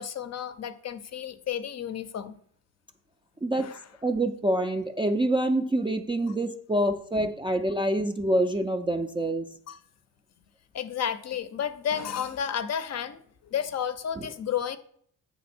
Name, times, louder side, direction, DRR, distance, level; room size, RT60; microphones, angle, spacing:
voice 1, 0.0-2.4 3.6-3.8 9.7-9.8 10.7-14.8, left 8 dB, 45° left, 12 dB, 0.5 m, -32 dB
voice 2, 4.0-9.5, right 1 dB, 15° right, 4 dB, 0.3 m, -26 dB
8.6 x 3.4 x 6.0 m, 0.62 s
cardioid pair, 140°, 37 cm